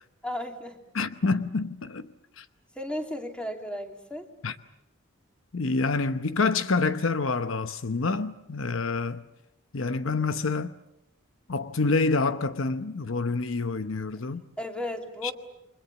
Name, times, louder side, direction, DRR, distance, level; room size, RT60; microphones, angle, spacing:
voice 1, 0.2-0.8 2.7-4.3 14.6-15.3, left 1 dB, 5° left, 3.0 m, -34 dB
voice 2, 0.9-2.4 4.4-4.6 5.5-9.2 9.7-10.7 11.5-14.4 15.2-15.3, left 3 dB, 70° left, 0.9 m, -27 dB
29.5 x 24.0 x 7.2 m
head